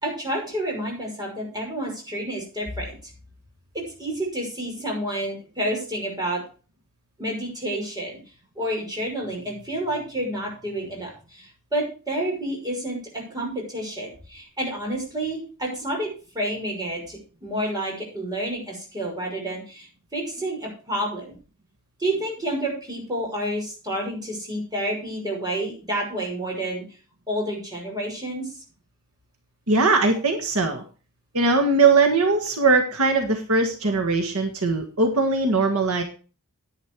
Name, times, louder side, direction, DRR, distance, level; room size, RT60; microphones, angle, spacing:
voice 1, 0.0-3.0 3.7-6.4 7.2-8.2 8.6-21.4 22.0-26.8 27.3-28.5, right 1 dB, 20° right, -1 dB, 5.9 m, -29 dB
voice 2, 29.7-30.8 31.3-36.0, right 3 dB, 70° right, 5 dB, 1.7 m, -20 dB
10.5 x 9.7 x 4.6 m, 0.36 s
head